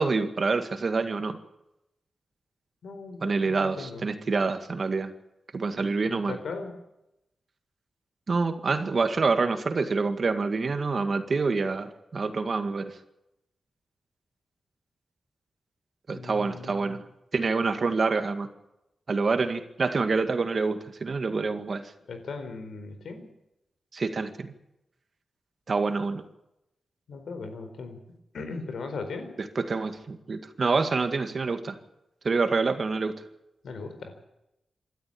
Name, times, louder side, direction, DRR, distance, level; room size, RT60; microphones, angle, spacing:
voice 1, 0.0-1.4 3.2-5.1 5.5-6.4 8.3-12.9 16.1-17.0 17.3-18.5 19.1-21.8 23.9-24.5 25.7-26.2 29.6-31.8 32.2-33.2, right 4 dB, 45° right, 8 dB, 2.0 m, -27 dB
voice 2, 2.8-4.0 5.8-6.7 16.1-17.0 22.1-23.3 27.1-28.0 28.3-29.4 33.6-34.1, left 4 dB, 80° left, 7 dB, 4.3 m, -38 dB
26.5 x 13.0 x 8.7 m, 0.87 s
wide cardioid pair, 120°, 0 cm